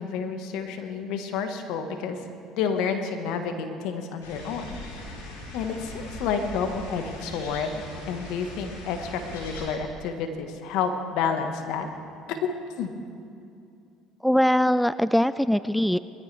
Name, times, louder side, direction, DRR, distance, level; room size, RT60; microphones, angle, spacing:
voice 1, 0.0-2.2 2.6-11.9 12.3-12.9, left 6 dB, 70° left, 6 dB, 1.4 m, -30 dB
sound 1, 4.2-9.7, left 2 dB, 85° left, 4.1 m, -40 dB
voice 2, 14.2-16.0, equal, ahead, 15 dB, 0.3 m, -21 dB
21.5 x 14.0 x 3.4 m, 2.5 s
hypercardioid pair, 70°, 0 cm